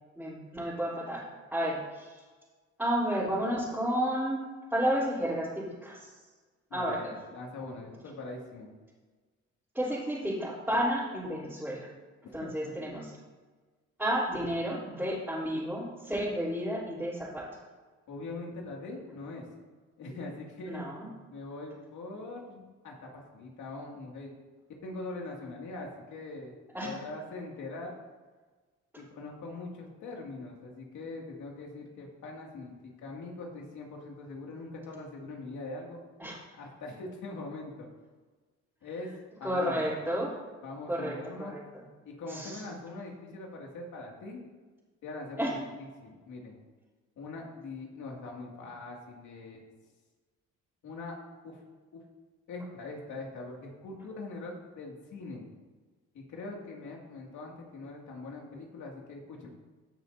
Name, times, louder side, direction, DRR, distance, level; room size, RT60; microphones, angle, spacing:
voice 1, 0.2-1.2 1.5-2.1 2.8-4.4 4.7-6.1 6.7-7.1 9.7-11.9 12.3-13.1 14.0-17.5 20.6-21.1 26.7-26.9 36.2-36.3 39.4-40.3 40.9-41.6 42.3-42.6 45.4-45.5, equal, 5° right, -10 dB, 3.5 m, -31 dB
voice 2, 6.7-8.7 12.2-12.7 18.1-19.5 20.0-20.8 21.3-24.3 24.8-26.6 26.8-27.9 29.0-32.7 33.0-36.0 36.6-37.9 38.8-39.1 39.4-39.9 40.6-41.6 42.0-44.4 45.0-45.6 46.0-46.6 47.2-49.7 50.8-51.2 51.4-51.6 51.9-52.0 52.5-55.5 56.1-59.5, left 2 dB, 75° left, -1 dB, 2.4 m, -42 dB
18.0 x 6.6 x 2.7 m, 1.3 s
cardioid pair, 90°, 30 cm